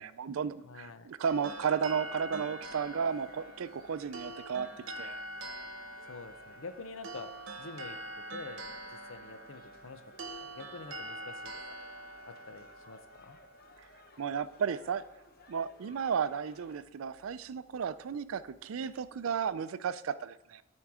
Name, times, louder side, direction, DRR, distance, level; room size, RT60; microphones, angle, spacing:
voice 1, 0.0-4.7 5.0-5.2 14.2-15.0 15.5-20.6, right 7 dB, 90° right, 15 dB, 0.4 m, -34 dB
voice 2, 0.6-1.1 6.1-7.3 7.6-8.0 8.3-11.5 12.3-13.4, left 3 dB, 80° left, 10 dB, 0.8 m, -47 dB
sound 1, 1.2-14.5, right 1 dB, 70° right, 1.0 m, -45 dB
sound 2, 1.5-16.8, left 3 dB, 50° left, 0.9 m, -59 dB
13.5 x 4.5 x 4.8 m, 0.95 s
head